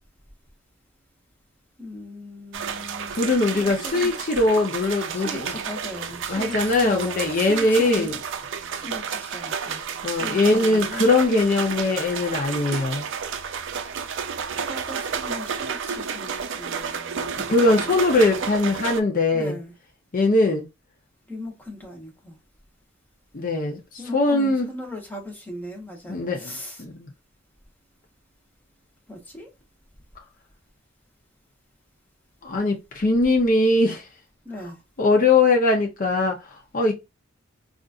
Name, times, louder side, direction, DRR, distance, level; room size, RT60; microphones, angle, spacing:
voice 1, 1.8-3.2 3.5-4.1 5.1-8.1 8.8-9.8 10.1-11.1 14.7-18.4 19.3-19.7 21.3-22.4 24.0-26.8 29.1-29.5 34.4-34.8, left 1 dB, 10° left, 0.9 m, -38 dB
sound 1, 2.5-19.0, right 6 dB, 65° right, 0.4 m, -31 dB
voice 2, 3.1-5.5 6.3-8.2 10.0-13.1 17.5-19.6 20.1-20.6 23.3-23.8 24.1-24.7 26.1-26.5 26.8-27.1 32.4-34.0 35.0-36.4 36.7-36.9, left 2 dB, 45° left, 0.6 m, -21 dB
3.8 x 2.5 x 2.4 m
head